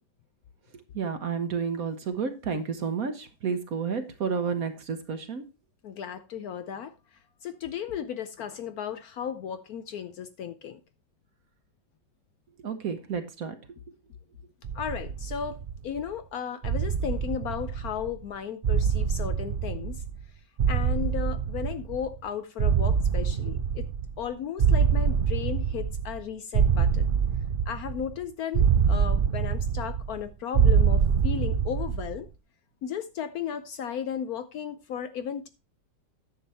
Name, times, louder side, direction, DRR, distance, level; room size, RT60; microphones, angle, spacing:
voice 1, 0.9-5.4 12.6-13.5, right 6 dB, 55° right, 1.2 m, -31 dB
voice 2, 5.8-6.9 7.4-10.8 14.7-20.0 20.7-23.9 24.2-27.1 27.7-32.3 32.8-35.5, left 8 dB, 70° left, 1.0 m, -35 dB
sound 1, 14.6-16.0 16.6-18.2 18.6-20.3 20.6-22.2 22.6-24.3 24.6-26.2 26.5-28.1 28.5-30.2 30.5-32.2, right 7 dB, 80° right, 0.4 m, -25 dB
10.0 x 7.0 x 4.1 m
omnidirectional pair, 2.0 m